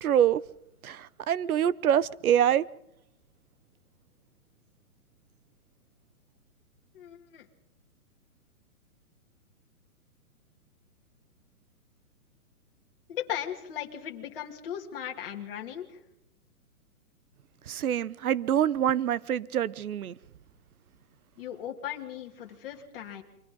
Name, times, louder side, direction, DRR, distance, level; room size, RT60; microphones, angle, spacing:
voice 1, 0.0-0.4 0.8-2.7 17.7-20.2, right 10 dB, 70° right, 21 dB, 0.9 m, -25 dB
voice 2, 6.9-7.5 13.1-16.0 21.4-23.2, left 10 dB, 40° left, 2 dB, 2.7 m, -37 dB
30.0 x 24.5 x 3.9 m, 0.81 s
hypercardioid pair, 170°, 45 cm